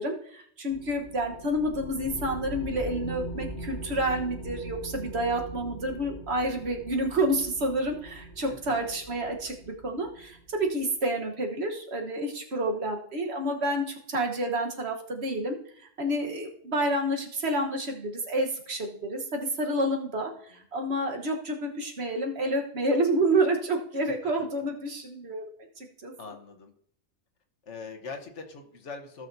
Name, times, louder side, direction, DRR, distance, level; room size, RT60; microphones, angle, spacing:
voice 1, 0.0-15.6 16.0-25.4 25.8-26.1, right 1 dB, 65° right, 2 dB, 1.5 m, -29 dB
sound 1, 0.7-10.7, right 1 dB, 75° left, 1.7 m, -41 dB
voice 2, 8.5-9.0 20.5-20.6 24.1-24.5 26.2-26.7 27.6-29.3, left 4 dB, 90° left, 4 dB, 1.5 m, -42 dB
16.5 x 6.3 x 2.7 m, 0.64 s
omnidirectional pair, 1.2 m